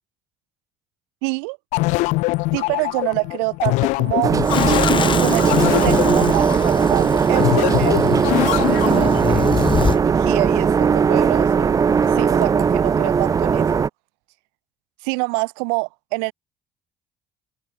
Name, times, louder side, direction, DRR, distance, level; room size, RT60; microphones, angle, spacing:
voice 1, 1.2-1.6 2.5-4.3 5.2-8.0 8.4-9.5 9.9-13.8 15.0-16.3, right 40 dB or more, 90° right, 1.4 m, -26 dB
sound 1, 1.7-9.2, left 23 dB, 80° left, 0.5 m, -23 dB
sound 2, 4.2-13.9, right 6 dB, 30° right, 0.3 m, -18 dB
sound 3, 4.5-10.0, left 6 dB, 40° left, 1.5 m, -27 dB
supercardioid pair, 65°, 12 cm